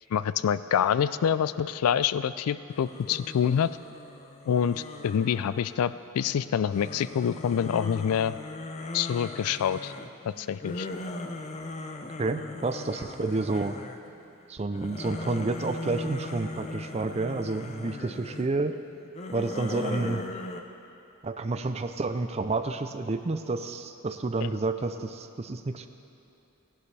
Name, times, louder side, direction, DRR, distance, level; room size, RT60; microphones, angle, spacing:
voice 1, 0.1-3.7 4.5-8.4 8.9-9.9 10.4-10.9, left 8 dB, 80° left, 15 dB, 0.3 m, -26 dB
sound 1, 2.7-6.1 6.7-14.2 14.6-18.5 19.0-20.6, left 2 dB, 30° left, 0.6 m, -39 dB
voice 2, 12.2-13.7 14.5-18.7 19.3-20.2 21.2-25.9, right 3 dB, 30° right, 9 dB, 0.4 m, -30 dB
17.0 x 11.5 x 3.3 m, 2.7 s
head